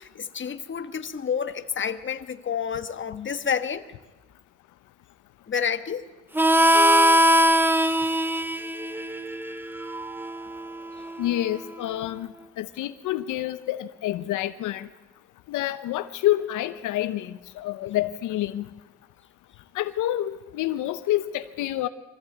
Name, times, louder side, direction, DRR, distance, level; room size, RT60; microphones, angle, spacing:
voice 1, 0.0-3.9 5.5-6.1, left 7 dB, 40° left, 1.4 m, -29 dB
Harmonica, 6.3-11.6, equal, 5° right, 0.8 m, -22 dB
voice 2, 11.2-12.3 12.6-14.9 15.5-18.7 19.7-21.9, left 14 dB, 85° left, 0.8 m, -28 dB
24.0 x 14.5 x 8.7 m
cardioid pair, 90°, 30 cm